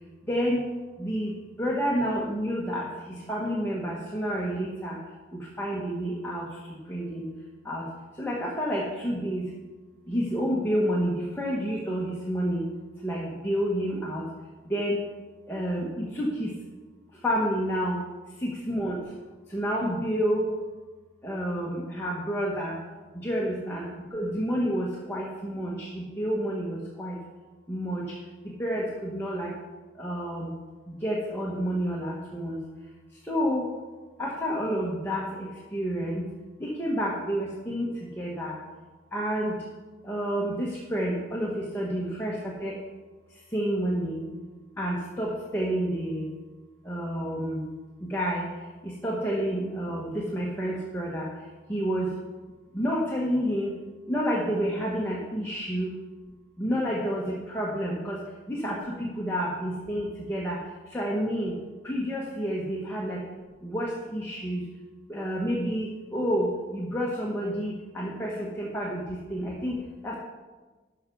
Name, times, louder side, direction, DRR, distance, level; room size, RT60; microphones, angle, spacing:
voice 1, 0.3-0.7 1.0-1.3 1.6-2.9 3.3-5.0 5.6-6.5 6.9-7.3 7.6-7.8 8.2-9.4 10.1-12.6 13.0-14.2 14.7-15.0 15.5-16.5 17.2-18.0 18.4-19.0 19.5-20.5 21.2-22.8 23.2-27.2 27.7-28.1 28.6-29.5 30.0-30.5 30.9-32.6 33.3-33.7 34.2-36.2 36.6-37.9 38.2-38.6 39.1-39.5 40.0-42.7 43.5-44.2 44.8-46.3 46.9-47.7 48.1-48.5 48.8-51.3 51.7-52.1 52.7-53.7 54.1-55.9 56.6-58.2 58.5-60.6 60.9-61.5 61.8-63.2 63.6-64.6 65.1-70.2, equal, 10° left, -4 dB, 1.3 m, -29 dB
12.5 x 5.9 x 4.6 m, 1.3 s
head